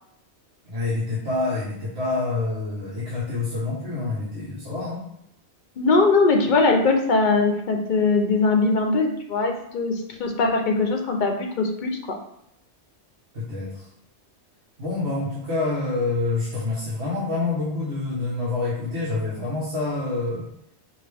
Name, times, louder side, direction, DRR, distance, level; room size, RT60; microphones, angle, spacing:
voice 1, 0.6-5.1 13.3-13.8 14.8-20.5, left 3 dB, 65° right, -7 dB, 1.4 m, -27 dB
voice 2, 5.8-9.9 10.2-12.2, left 3 dB, 50° left, 3 dB, 0.7 m, -21 dB
5.2 x 2.6 x 3.3 m, 0.77 s
omnidirectional pair, 1.2 m